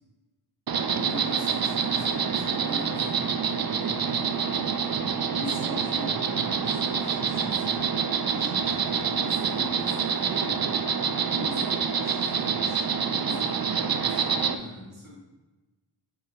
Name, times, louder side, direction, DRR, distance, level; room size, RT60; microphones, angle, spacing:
Insect, 0.7-14.5, right 6 dB, 50° right, 0.6 m, -27 dB
voice 1, 0.9-7.8 8.3-10.7 11.3-15.1, equal, 85° right, -7 dB, 2.3 m, -40 dB
8.4 x 5.7 x 3.6 m, 1.1 s
cardioid pair, 60°, 48 cm